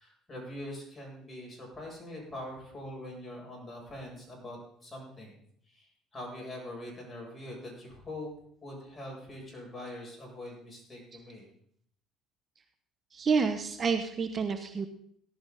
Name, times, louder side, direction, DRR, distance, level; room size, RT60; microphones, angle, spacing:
voice 1, 0.0-5.4 5.7-8.3 8.6-11.5, left 1 dB, 20° left, -2 dB, 7.9 m, -43 dB
voice 2, 13.1-14.9, right 5 dB, 40° right, 7 dB, 1.1 m, -29 dB
17.5 x 12.0 x 4.2 m, 0.67 s
supercardioid pair, 95°, 0 cm